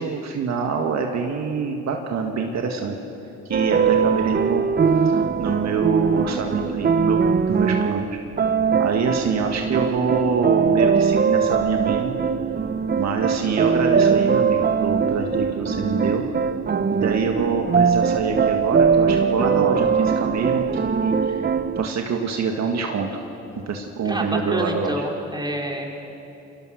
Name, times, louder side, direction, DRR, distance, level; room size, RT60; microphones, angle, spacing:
voice 1, 0.0-3.0 3.5-4.7 5.0-8.2 8.8-12.2 13.0-16.3 16.9-21.4 21.8-23.1 23.7-24.9, right 5 dB, 60° right, 2 dB, 1.8 m, -25 dB
sound 1, 3.5-21.9, right 6 dB, 35° right, 0.8 m, -21 dB
voice 2, 24.0-25.9, right 1 dB, 15° right, 0 dB, 4.2 m, -27 dB
28.5 x 22.5 x 6.5 m, 2.9 s
cardioid pair, 90°, 30 cm